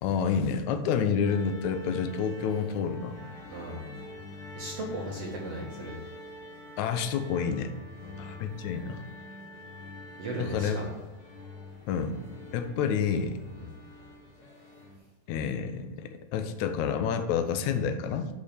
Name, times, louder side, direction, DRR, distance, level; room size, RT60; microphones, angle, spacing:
voice 1, 0.0-3.2 6.8-7.7 8.2-9.0 10.3-10.8 11.9-12.2 12.5-13.4 15.3-18.3, left 6 dB, 85° left, 8 dB, 1.6 m, -29 dB
sound 1, 1.2-15.0, left 1 dB, 40° left, 2.8 m, -45 dB
voice 2, 3.5-3.9 4.6-6.0 8.0-8.2 10.2-10.9 13.5-13.7, right 1 dB, 50° right, -3 dB, 2.1 m, -37 dB
8.5 x 5.4 x 6.9 m, 1.1 s
omnidirectional pair, 4.3 m